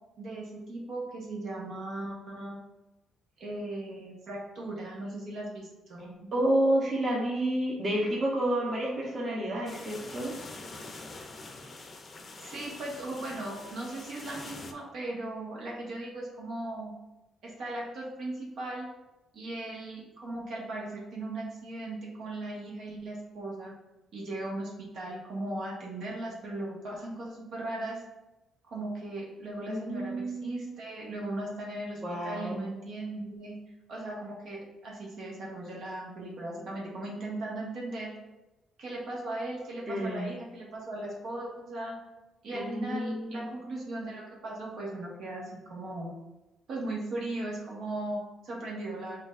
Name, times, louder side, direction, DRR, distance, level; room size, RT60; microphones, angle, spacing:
voice 1, 0.2-2.6 3.4-6.3 12.4-16.9 17.4-18.9 19.3-23.7 24.1-28.0 28.6-33.6 33.9-38.1 38.8-42.0 42.4-46.1 46.7-49.2, right 2 dB, 65° right, -3 dB, 1.4 m, -38 dB
voice 2, 6.3-10.3 29.6-30.8 32.0-32.6 39.9-40.2 42.5-43.5, right 1 dB, 35° right, -4 dB, 1.1 m, -30 dB
sound 1, 9.7-14.7, left 3 dB, 35° left, 0.6 m, -45 dB
7.7 x 2.7 x 2.5 m, 0.99 s
cardioid pair, 120°, 0 cm